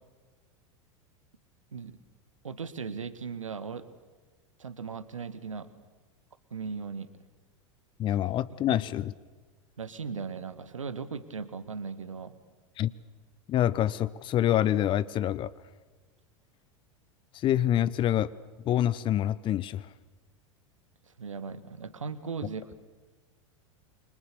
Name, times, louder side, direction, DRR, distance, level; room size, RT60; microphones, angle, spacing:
voice 1, 2.4-3.8 4.6-5.7 6.5-7.1 8.5-8.8 9.8-12.4 21.1-22.8, right 5 dB, 75° right, 1.7 m, -38 dB
voice 2, 8.0-9.1 12.8-12.9 13.5-15.5 17.3-18.3 18.6-19.9, left 11 dB, 30° left, 0.8 m, -26 dB
29.5 x 25.0 x 6.8 m
figure-of-eight pair, 85°, 16 cm